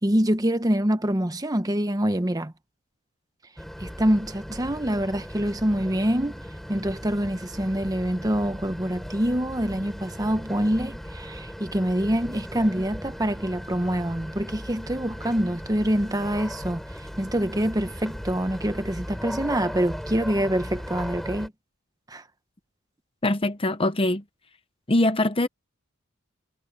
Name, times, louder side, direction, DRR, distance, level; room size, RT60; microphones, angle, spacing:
voice 1, 0.0-2.5 3.8-6.4 6.7-21.5 22.1-22.2, equal, 15° right, 1.0 m, -25 dB
sound 1, 3.6-21.5, equal, ahead, 5.8 m, -37 dB
voice 2, 23.2-24.2 24.9-25.5, left 1 dB, 25° left, 0.8 m, -22 dB
head